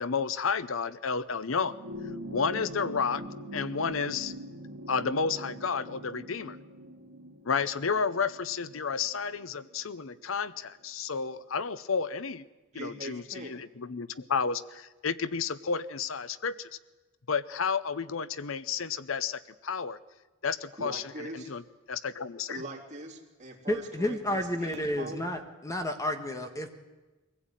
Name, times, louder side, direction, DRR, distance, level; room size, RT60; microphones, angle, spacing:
voice 1, 0.0-1.7 2.3-3.2 3.5-4.4 4.9-6.6 7.4-12.4 12.7-16.7 17.3-20.0 20.4-21.6 21.9-22.6, left 5 dB, 85° left, 16 dB, 0.8 m, -31 dB
sound 1, 1.5-10.2 11.4-11.5, equal, 90° right, 2.9 m, -43 dB
voice 2, 12.7-13.6 20.8-21.5 22.5-25.3, right 2 dB, 35° right, 0 dB, 3.4 m, -42 dB
voice 3, 23.7-26.7, left 1 dB, 15° left, 6 dB, 1.5 m, -31 dB
23.5 x 15.5 x 9.1 m, 1.2 s
head